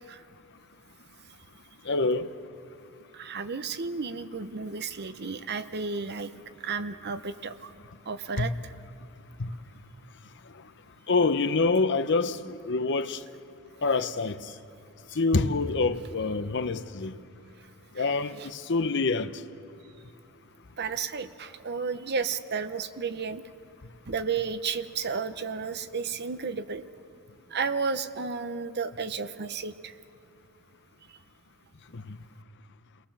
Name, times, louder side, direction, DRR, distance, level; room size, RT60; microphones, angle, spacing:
voice 1, 1.8-2.3 8.4-8.5 9.4-9.5 11.1-13.2 13.8-14.5 15.1-17.2 17.9-19.4 31.9-32.2, left 3 dB, 55° left, 0.8 m, -26 dB
voice 2, 3.1-6.3 6.6-7.7 8.1-8.5 18.0-18.1 20.8-23.4 24.1-26.8 27.5-29.9, right 5 dB, 50° right, 0.8 m, -32 dB
29.5 x 19.0 x 7.3 m
head